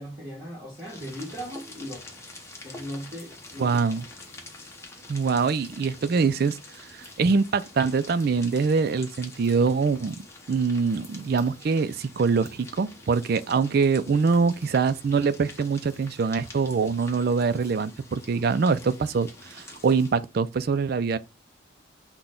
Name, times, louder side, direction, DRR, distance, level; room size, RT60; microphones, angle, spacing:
voice 1, 0.0-2.2 2.6-3.8, equal, 15° right, 1.4 m, -38 dB
sound 1, 0.7-20.3, left 2 dB, 15° left, 0.8 m, -46 dB
voice 2, 3.6-4.1 5.1-6.6 7.0-10.2 10.5-21.2, right 5 dB, 50° right, 0.4 m, -24 dB
6.0 x 2.2 x 3.7 m
head